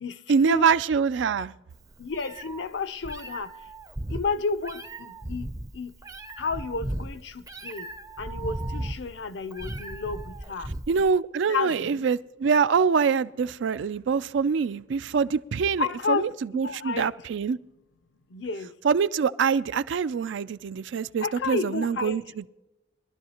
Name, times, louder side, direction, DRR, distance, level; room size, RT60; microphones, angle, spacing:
voice 1, 0.3-1.5 10.9-17.6 18.8-22.5, right 6 dB, 85° right, 0.4 m, -25 dB
Meow, 1.7-11.1, right 1 dB, 20° right, 0.5 m, -36 dB
voice 2, 2.0-3.5 4.1-5.5 5.7-5.9 6.4-7.3 7.6-7.8 8.2-10.2 10.5-10.7 11.5-12.0 15.8-16.2 16.6-17.1 18.3-18.7 21.2-22.2, left 4 dB, 75° left, 0.6 m, -31 dB
22.0 x 12.0 x 2.9 m
head